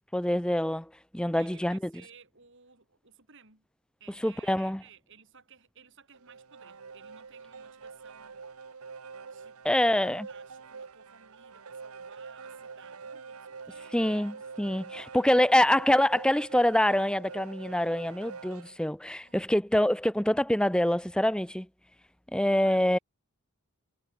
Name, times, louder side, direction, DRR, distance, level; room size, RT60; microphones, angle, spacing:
voice 1, 0.1-1.8 4.2-4.8 9.6-10.3 13.9-21.7 22.3-23.0, left 1 dB, 5° left, 0.7 m, -25 dB
voice 2, 1.3-3.7 4.0-9.0 9.3-9.9 10.3-14.1 15.1-15.5 19.2-19.5 22.6-23.0, right 6 dB, 60° right, 7.0 m, -57 dB
sound 1, 6.1-18.8, right 5 dB, 85° right, 1.0 m, -46 dB
head